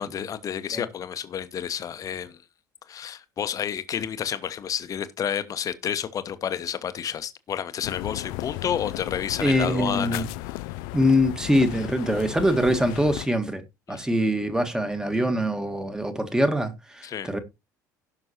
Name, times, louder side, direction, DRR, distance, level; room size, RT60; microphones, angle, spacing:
voice 1, 0.0-2.4 2.9-10.7 13.9-14.1 17.0-17.3, left 9 dB, 35° left, 1.0 m, -30 dB
sound 1, 7.8-13.3, left 19 dB, 55° left, 0.4 m, -35 dB
voice 2, 9.4-10.3 10.9-13.6 13.9-17.4, equal, 5° right, 1.6 m, -23 dB
17.0 x 5.9 x 2.9 m
figure-of-eight pair, 60°, 9 cm